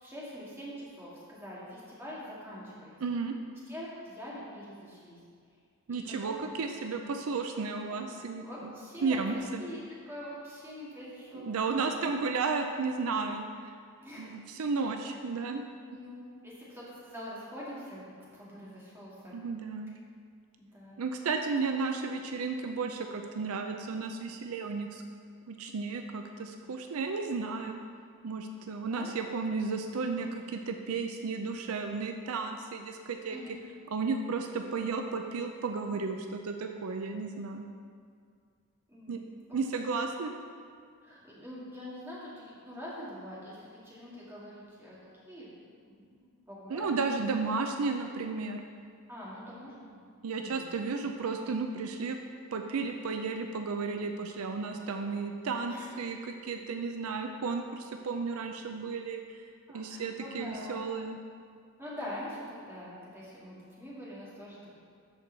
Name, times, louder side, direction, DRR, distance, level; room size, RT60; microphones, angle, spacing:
voice 1, 0.0-2.9 3.7-5.2 5.9-6.4 7.9-8.0 8.4-11.7 12.0-12.1 14.0-14.4 15.9-18.0 18.3-19.4 20.6-21.0 28.9-29.1 33.3-33.6 38.9-39.9 41.0-45.0 45.2-46.9 49.1-50.0 50.4-50.6 55.7-56.1 59.7-60.8 61.8-64.8, equal, 10° right, -8 dB, 2.1 m, -44 dB
voice 2, 3.0-3.3 5.9-8.7 9.0-9.6 11.3-13.7 14.2-15.6 19.3-19.9 21.0-25.0 25.5-27.8 28.2-33.4 33.9-37.7 39.1-39.2 39.5-40.3 46.7-48.6 50.2-52.2 52.5-56.2 56.4-59.2 59.7-61.2, right 4 dB, 75° right, 5 dB, 0.5 m, -33 dB
13.0 x 4.6 x 4.0 m, 2.2 s
head